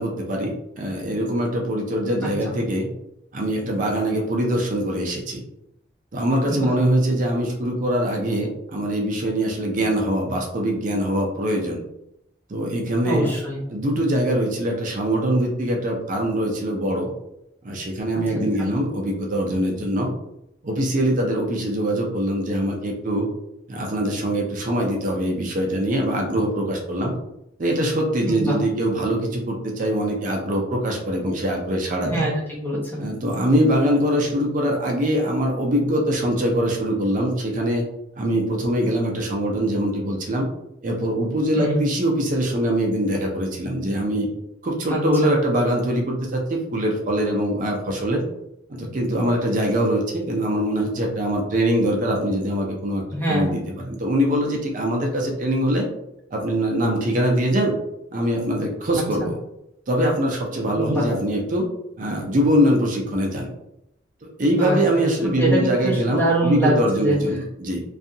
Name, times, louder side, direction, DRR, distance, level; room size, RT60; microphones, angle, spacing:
voice 1, 0.0-2.9 3.3-5.4 6.1-11.8 12.5-13.3 13.7-17.1 17.6-20.1 20.6-23.3 23.7-27.2 27.6-32.2 33.0-37.9 38.2-40.5 40.8-44.3 44.6-48.2 48.7-53.0 53.3-55.9 56.3-57.8 58.1-59.4 59.9-61.7 62.0-63.5 64.2-67.8, equal, 45° right, 0 dB, 0.4 m, -23 dB
voice 2, 13.0-13.6 18.3-18.7 28.2-28.6 32.0-33.0 41.5-41.8 44.9-45.3 53.1-53.6 59.2-59.3 60.8-61.1 64.6-67.2, right 1 dB, 10° left, -4 dB, 0.7 m, -24 dB
2.6 x 2.3 x 2.6 m, 0.82 s
head